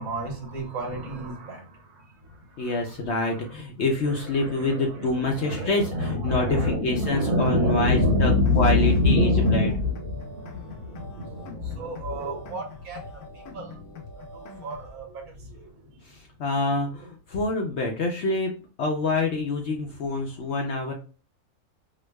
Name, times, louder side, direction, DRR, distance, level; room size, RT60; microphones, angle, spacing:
voice 1, 0.0-3.0 3.3-3.5 4.0-13.8 14.1-16.0, left 2 dB, 70° right, 2 dB, 1.4 m, -27 dB
voice 2, 2.6-9.7 16.0-18.5 18.8-20.9, left 2 dB, 65° left, 2 dB, 0.7 m, -26 dB
sound 1, 7.0-15.0, left 2 dB, 85° left, 1.1 m, -43 dB
4.6 x 2.2 x 2.2 m, 0.36 s
omnidirectional pair, 1.6 m